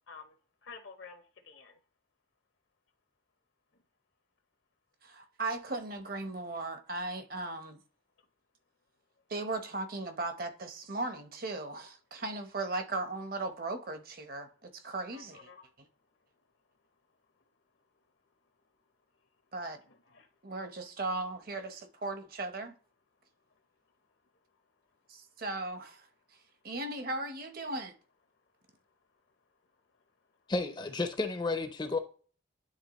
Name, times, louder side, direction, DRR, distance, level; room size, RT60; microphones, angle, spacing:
voice 1, 0.6-1.8 15.1-15.6 19.9-20.3, left 5 dB, 70° left, 0.8 m, -50 dB
voice 2, 5.0-7.8 9.3-15.5 15.8-15.9 19.5-19.8 20.4-22.7 25.1-26.1 26.6-27.9, right 2 dB, 45° right, 0.8 m, -37 dB
voice 3, 30.5-32.0, left 3 dB, 20° left, 0.5 m, -32 dB
10.0 x 3.5 x 3.0 m
head